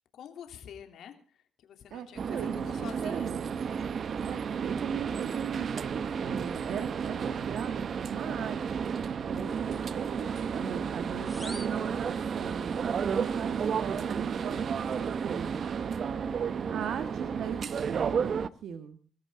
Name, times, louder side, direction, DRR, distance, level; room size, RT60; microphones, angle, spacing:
voice 1, 0.1-3.3, left 8 dB, 75° left, 6 dB, 3.1 m, -47 dB
voice 2, 1.9-3.5 4.2-8.9 9.2-15.6 16.7-19.0, right 8 dB, 75° right, 9 dB, 1.6 m, -39 dB
sound 1, 2.2-18.5, right 6 dB, 55° right, 0.8 m, -32 dB
sound 2, 11.2-12.8, equal, ahead, 1.4 m, -47 dB
24.5 x 14.0 x 3.8 m, 0.39 s
cardioid pair, 90°, 0 cm